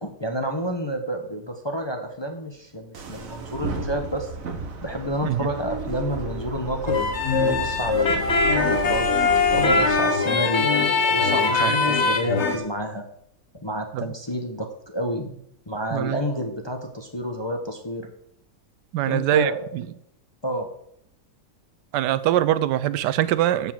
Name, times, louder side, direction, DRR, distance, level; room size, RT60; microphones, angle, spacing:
voice 1, 0.0-4.3 4.8-7.0 7.3-9.1 9.5-10.7 11.0-13.0 13.6-15.4 15.7-18.1 19.1-19.7 20.4-20.7, equal, 20° left, 0.7 m, -29 dB
sound 1, 2.9-10.0, right 3 dB, 55° right, 1.4 m, -34 dB
sound 2, 6.9-12.6, left 4 dB, 45° left, 1.4 m, -21 dB
voice 2, 18.9-19.8 21.9-23.7, right 12 dB, 90° right, 1.2 m, -23 dB
7.1 x 6.7 x 7.5 m
omnidirectional pair, 1.8 m